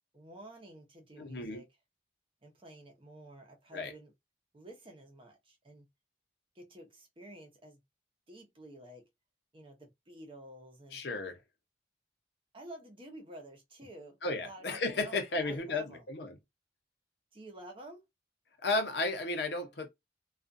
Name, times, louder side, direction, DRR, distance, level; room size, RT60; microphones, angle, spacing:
voice 1, 0.1-1.7 2.4-4.1 4.5-5.9 6.5-7.8 8.3-9.1 9.5-11.0 12.5-16.0 17.3-18.0, right 1 dB, 30° right, 0.8 m, -51 dB
voice 2, 1.2-1.6 3.7-3.9 10.9-11.4 14.2-16.4 18.6-19.9, left 3 dB, 70° left, 0.8 m, -34 dB
2.4 x 2.3 x 2.5 m
head